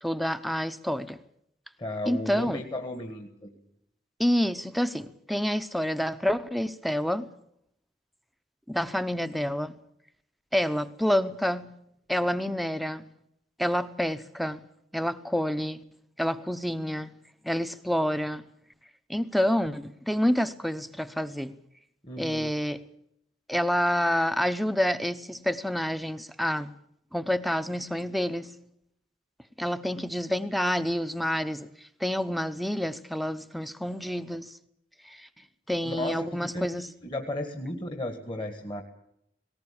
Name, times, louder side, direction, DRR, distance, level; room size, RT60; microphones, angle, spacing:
voice 1, 0.0-1.2 2.1-2.7 4.2-7.3 8.7-9.8 10.5-11.7 12.1-13.1 13.6-14.6 14.9-15.8 16.2-17.1 17.4-18.4 19.1-21.5 22.2-22.8 23.5-26.7 27.1-28.5 29.6-34.6 35.0-35.3 35.7-36.9, equal, ahead, 0.8 m, -28 dB
voice 2, 1.8-3.5 22.0-22.5 35.8-36.7 37.0-38.8, left 1 dB, 25° left, 1.6 m, -34 dB
19.0 x 19.0 x 8.6 m
head